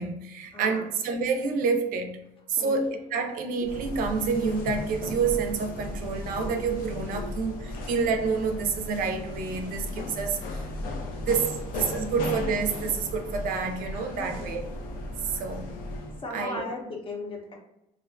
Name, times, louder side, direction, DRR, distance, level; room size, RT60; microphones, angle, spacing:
voice 1, 0.0-2.2 2.5-10.6 11.3-14.6 15.2-15.7 16.3-16.6, right 5 dB, 75° right, 5 dB, 0.4 m, -28 dB
voice 2, 0.5-0.9 2.5-2.8 11.1-11.2 14.2-14.5 15.9-17.6, left 2 dB, 40° left, 0 dB, 0.6 m, -37 dB
sound 1, 3.6-16.2, left 1 dB, 90° left, 0.5 m, -36 dB
2.4 x 2.1 x 2.4 m, 0.86 s
cardioid pair, 110°, 14 cm